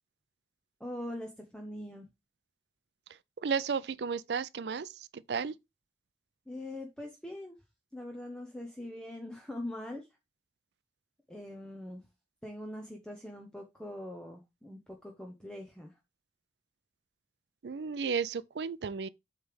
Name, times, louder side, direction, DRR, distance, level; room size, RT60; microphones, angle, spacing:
voice 1, 0.8-2.1 6.5-7.6 7.9-10.1 11.3-12.0 12.4-16.0, left 1 dB, 5° left, 0.8 m, -42 dB
voice 2, 3.4-5.6 17.6-19.1, right 6 dB, 80° right, 0.4 m, -33 dB
8.0 x 3.3 x 5.1 m
head